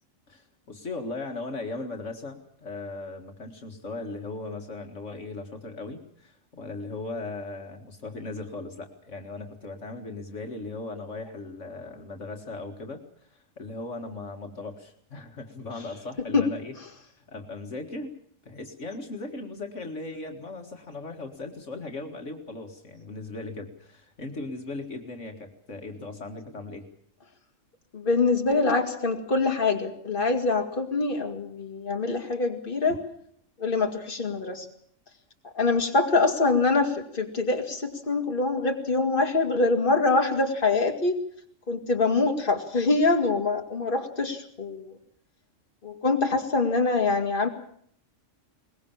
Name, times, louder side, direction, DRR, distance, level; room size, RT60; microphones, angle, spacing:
voice 1, 0.3-16.8 17.2-18.1 18.5-26.9, left 3 dB, 70° left, 4 dB, 2.3 m, -38 dB
voice 2, 27.9-33.0 33.6-34.7 35.4-41.2 41.7-44.9 45.8-47.5, left 3 dB, 45° left, 3 dB, 2.6 m, -24 dB
22.0 x 20.5 x 7.3 m, 0.65 s
omnidirectional pair, 1.3 m